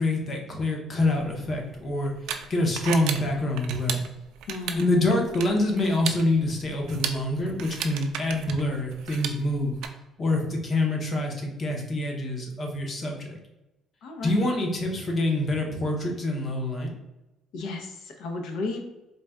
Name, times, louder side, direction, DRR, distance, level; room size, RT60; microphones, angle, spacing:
voice 1, 0.0-2.1 2.5-4.0 4.8-9.8 10.2-13.4 14.2-16.9, left 1 dB, 30° left, 1 dB, 0.7 m, -26 dB
sound 1, 1.2-9.9, right 8 dB, 90° right, 0.3 m, -36 dB
voice 2, 4.5-4.9 14.0-14.5 17.5-18.8, left 3 dB, 70° left, 3 dB, 0.7 m, -34 dB
3.9 x 2.2 x 3.4 m, 0.97 s
cardioid pair, 165°, 0 cm